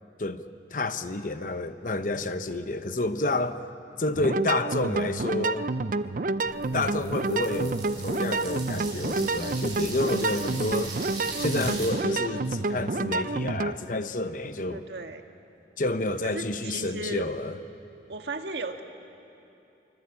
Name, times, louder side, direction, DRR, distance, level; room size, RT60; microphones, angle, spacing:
voice 1, 0.7-3.6 4.0-5.7 6.7-10.9 11.4-14.8 15.8-17.6, left 2 dB, 45° left, 10 dB, 0.9 m, -29 dB
sound 1, 4.2-13.8, right 3 dB, 50° right, 0.5 m, -29 dB
sound 2, 6.4-11.9, right 3 dB, 25° right, 7.0 m, -39 dB
voice 2, 14.7-15.2 16.2-17.2 18.1-18.8, right 2 dB, 70° right, 5 dB, 1.7 m, -35 dB
25.0 x 24.5 x 8.6 m, 2.8 s
head